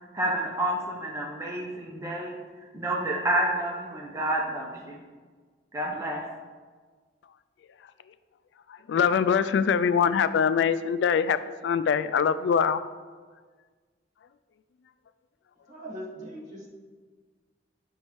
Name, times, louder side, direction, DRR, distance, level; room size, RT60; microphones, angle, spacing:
voice 1, 0.1-2.3 2.7-5.0 5.7-6.2, right 1 dB, 15° right, 0.8 m, -29 dB
voice 2, 8.9-11.4 11.6-12.8, left 7 dB, 75° left, 0.3 m, -23 dB
voice 3, 15.7-16.7, equal, 45° right, 1.7 m, -40 dB
9.2 x 5.3 x 3.1 m
head